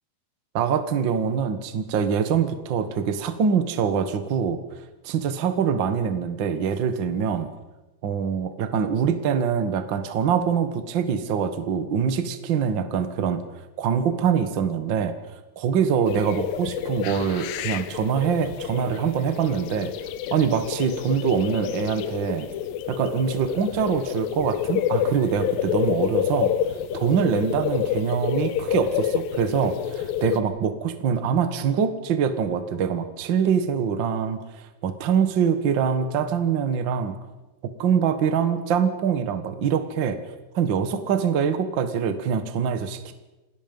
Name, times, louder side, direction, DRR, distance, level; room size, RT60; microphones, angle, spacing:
voice 1, 0.5-4.6 5.0-7.5 8.0-13.4 13.8-15.1 15.6-19.9 20.3-22.5 22.9-26.5 26.9-37.2 37.6-40.2 40.5-43.1, right 7 dB, 80° right, 9 dB, 1.0 m, -24 dB
sound 1, 16.1-30.4, left 10 dB, 75° left, 2.4 m, -28 dB
28.0 x 19.0 x 5.4 m, 1.1 s
omnidirectional pair, 4.6 m